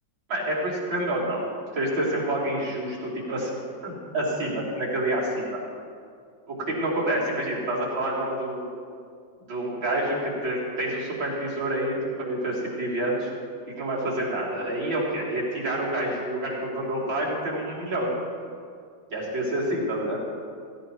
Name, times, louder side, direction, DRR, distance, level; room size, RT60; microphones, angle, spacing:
voice 1, 0.3-1.5 1.7-3.5 3.8-5.6 6.5-8.7 9.5-13.3 13.8-18.1 19.1-20.2, right 1 dB, 90° right, -6 dB, 4.1 m, -28 dB
16.5 x 16.5 x 3.2 m, 2.2 s
omnidirectional pair, 2.1 m